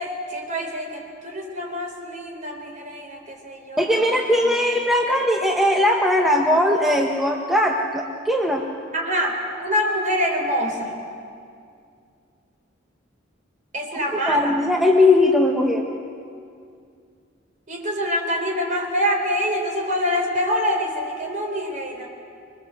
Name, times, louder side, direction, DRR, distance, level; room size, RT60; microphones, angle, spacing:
voice 1, 0.0-4.1 4.4-4.5 8.9-10.9 13.7-14.5 17.7-22.1, equal, 40° right, 2 dB, 4.1 m, -25 dB
voice 2, 3.8-8.6 14.1-15.9, left 1 dB, ahead, 0 dB, 1.3 m, -19 dB
25.5 x 22.5 x 7.8 m, 2.3 s
head